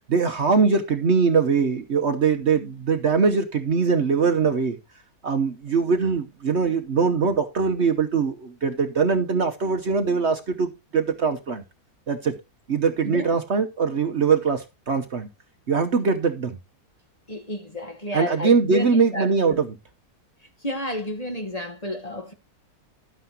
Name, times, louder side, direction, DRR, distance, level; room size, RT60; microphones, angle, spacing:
voice 1, 0.1-4.8 5.2-11.6 12.1-12.3 12.7-15.3 15.7-16.6 18.1-19.7, right 5 dB, 50° right, 1.1 m, -22 dB
voice 2, 13.0-13.4 17.3-18.9 19.1-19.6 20.6-22.3, left 1 dB, 25° left, 1.4 m, -31 dB
12.0 x 9.6 x 2.9 m
omnidirectional pair, 1.7 m